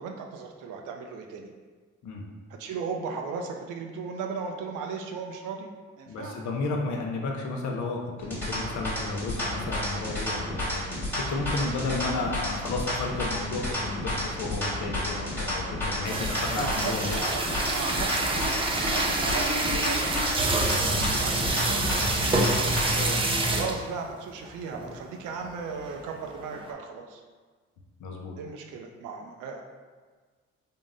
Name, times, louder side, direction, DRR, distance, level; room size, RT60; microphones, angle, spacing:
voice 1, 0.0-1.5 2.6-5.7 6.0-6.4 16.4-22.3 22.6-27.2 28.4-29.6, right 5 dB, 85° right, 3 dB, 0.5 m, -36 dB
voice 2, 6.1-17.2 23.0-23.2 28.0-28.3, left 3 dB, 70° left, 1 dB, 0.7 m, -32 dB
sound 1, 8.2-23.0, left 1 dB, 5° left, 1.3 m, -31 dB
sound 2, 16.0-23.9 24.4-24.5 24.7-25.0 25.4-26.7, right 2 dB, 20° right, 0.4 m, -27 dB
3.7 x 2.0 x 3.8 m, 1.4 s
cardioid pair, 90°, 30 cm